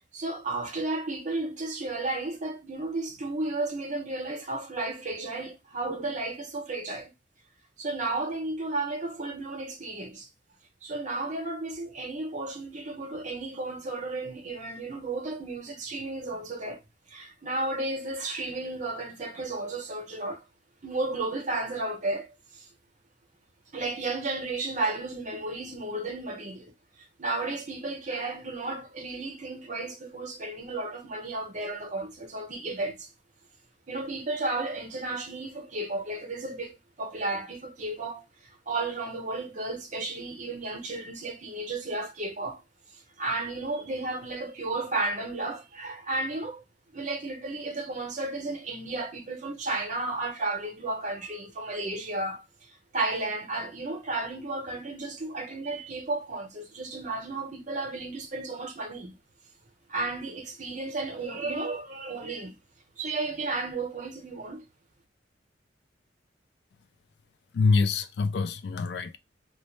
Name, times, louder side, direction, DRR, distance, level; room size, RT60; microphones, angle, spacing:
voice 1, 0.1-7.1 7.8-10.3 10.8-16.8 17.1-20.4 20.8-22.7 23.7-26.7 27.2-33.1 33.9-38.2 38.7-42.6 43.2-46.6 46.9-52.4 52.9-59.1 59.9-62.6 63.0-64.6, right 2 dB, 45° right, 0.7 m, -33 dB
voice 2, 67.5-69.2, left 4 dB, 70° left, 0.3 m, -25 dB
2.2 x 2.0 x 3.0 m
head